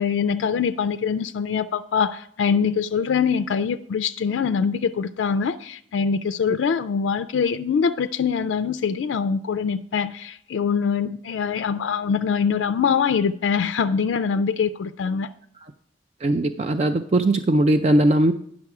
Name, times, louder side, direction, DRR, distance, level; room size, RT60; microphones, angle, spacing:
voice 1, 0.0-15.3, left 6 dB, 85° left, 0.3 m, -23 dB
voice 2, 16.2-18.3, right 1 dB, 35° right, 0.3 m, -19 dB
9.7 x 6.1 x 4.7 m
head